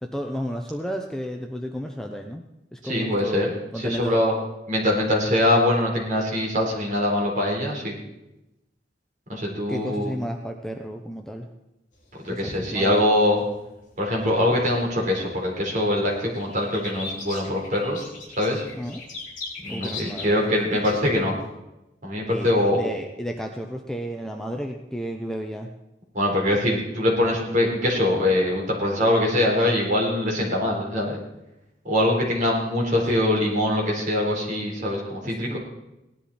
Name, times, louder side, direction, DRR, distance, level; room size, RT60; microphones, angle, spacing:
voice 1, 0.0-2.4 2.7-4.2 9.7-11.5 12.3-12.9 18.7-19.0 19.7-21.0 22.3-25.7 35.2-35.6, equal, 5° left, 3 dB, 0.8 m, -33 dB
voice 2, 2.8-4.3 4.7-7.9 9.3-10.1 12.2-13.4 14.0-18.0 18.4-18.7 19.6-21.3 22.0-22.8 26.1-31.2 31.8-35.6, left 1 dB, 45° right, -2 dB, 4.1 m, -23 dB
sound 1, 12.0-14.5 14.9-21.3, left 3 dB, 45° left, 4.0 m, -39 dB
17.0 x 11.5 x 4.3 m, 0.94 s
head